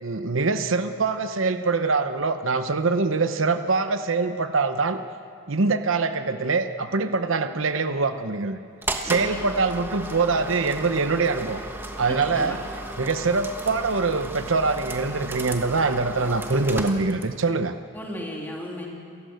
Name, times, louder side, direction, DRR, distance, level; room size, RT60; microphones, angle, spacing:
voice 1, 0.0-5.0 5.5-8.6 9.0-11.6 12.0-12.6 13.0-17.7, right 4 dB, 75° right, 9 dB, 0.9 m, -24 dB
sound 1, 8.8-17.5, right 1 dB, 10° right, 1.3 m, -35 dB
voice 2, 9.0-9.5 12.3-12.6 17.9-18.9, left 1 dB, 10° left, -2 dB, 3.2 m, -35 dB
28.5 x 14.5 x 8.0 m, 2.3 s
head